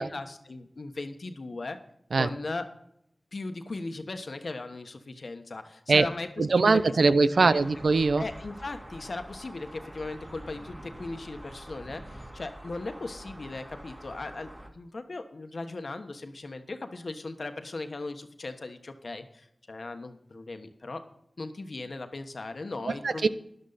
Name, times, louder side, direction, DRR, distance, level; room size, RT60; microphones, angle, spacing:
voice 1, 0.0-1.8 2.1-2.7 3.3-6.8 7.3-7.6 8.2-21.0 21.4-23.3, left 3 dB, 70° left, 7 dB, 1.2 m, -38 dB
voice 2, 6.4-8.2 23.0-23.3, right 3 dB, 90° right, 13 dB, 0.6 m, -22 dB
sound 1, 7.6-14.7, right 1 dB, 30° right, 2.4 m, -46 dB
12.5 x 11.0 x 4.1 m, 0.75 s
cardioid pair, 45°, 0 cm